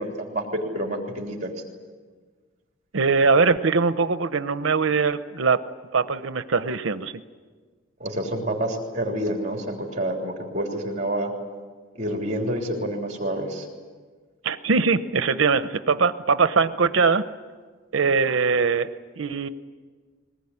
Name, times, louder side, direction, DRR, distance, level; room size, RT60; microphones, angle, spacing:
voice 1, 0.0-1.5 8.0-11.3 12.0-13.7, right 1 dB, 35° right, 1 dB, 3.3 m, -28 dB
voice 2, 2.9-5.6 5.9-7.1 14.4-17.2 17.9-18.9 19.2-19.5, right 4 dB, 85° right, 11 dB, 0.8 m, -21 dB
22.5 x 19.5 x 9.8 m, 1.5 s
head